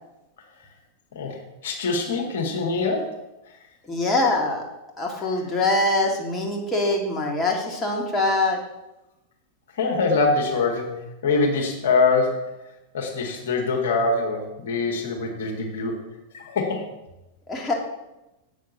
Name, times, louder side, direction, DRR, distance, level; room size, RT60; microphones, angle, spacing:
voice 1, 1.1-3.1 9.7-12.5 12.9-16.0 16.3-16.9, left 3 dB, 60° left, 1 dB, 1.8 m, -24 dB
voice 2, 3.9-4.6 5.0-8.6 17.5-17.7, left 2 dB, 15° left, -1 dB, 2.0 m, -23 dB
8.2 x 6.4 x 6.8 m, 0.96 s
figure-of-eight pair, 90°, 0 cm